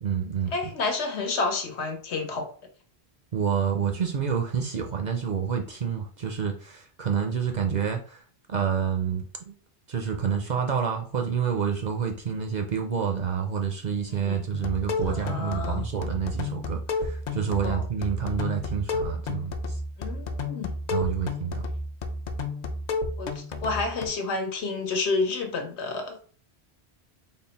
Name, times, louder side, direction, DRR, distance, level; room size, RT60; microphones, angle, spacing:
voice 1, 0.0-0.5 3.3-8.2 8.5-9.5 9.9-19.8 20.9-21.6, right 7 dB, 55° right, 3 dB, 0.5 m, -28 dB
voice 2, 0.5-2.5 14.1-14.4 15.0-15.8 17.6-17.8 20.0-20.7 23.2-26.2, left 3 dB, 90° left, 4 dB, 1.1 m, -30 dB
sound 1, 14.5-24.1, left 3 dB, 55° left, 0.5 m, -32 dB
3.7 x 2.1 x 4.0 m, 0.42 s
omnidirectional pair, 1.1 m